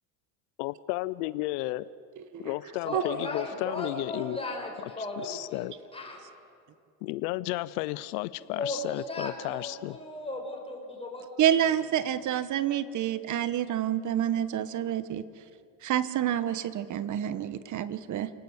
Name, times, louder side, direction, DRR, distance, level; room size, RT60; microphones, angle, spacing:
voice 1, 0.6-1.9 2.4-4.4 5.0-5.7 7.0-10.0, left 18 dB, 85° left, 17 dB, 0.7 m, -33 dB
voice 2, 2.8-6.2 8.4-11.7 12.0-12.1, left 2 dB, 10° left, 0 dB, 6.3 m, -37 dB
voice 3, 11.4-15.3 15.8-18.3, right 10 dB, 40° right, 14 dB, 1.3 m, -28 dB
28.5 x 18.5 x 8.2 m, 2.5 s
supercardioid pair, 120°, 46 cm